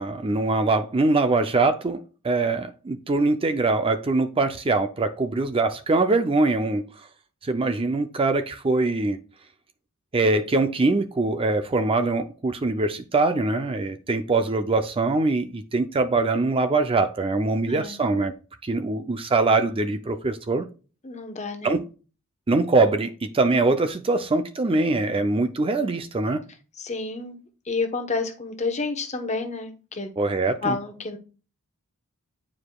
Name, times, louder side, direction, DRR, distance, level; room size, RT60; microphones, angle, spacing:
voice 1, 0.0-6.8 7.4-9.2 10.1-18.3 18.6-20.7 21.6-21.8 22.5-26.4 30.2-30.8, right 3 dB, 25° right, 0.5 m, -23 dB
voice 2, 17.6-18.1 21.0-21.8 26.8-27.4 27.7-30.1 30.6-31.2, left 3 dB, 35° left, 1.0 m, -30 dB
9.3 x 4.8 x 2.3 m
head